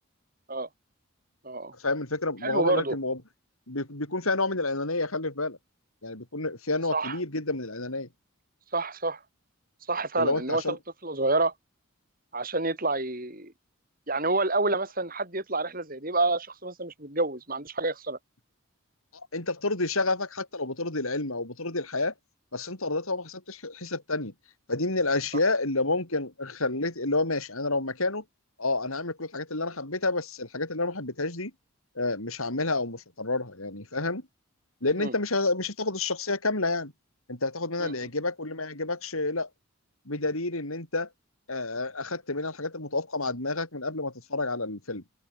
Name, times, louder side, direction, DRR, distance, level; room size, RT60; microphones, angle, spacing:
voice 1, 1.8-3.2 3.7-5.6 6.0-8.1 10.1-10.8 19.3-22.1 22.5-24.3 24.7-28.2 28.6-31.5 32.0-34.2 34.8-36.9 37.3-39.5 40.1-41.1 41.5-45.0, left 2 dB, 75° left, 5.4 m, -29 dB
voice 2, 2.4-3.0 6.9-7.2 8.7-9.2 9.9-10.8 11.0-11.5 12.3-13.5 14.1-18.2 35.0-35.1 37.8-37.9, right 2 dB, 40° right, 7.5 m, -28 dB
head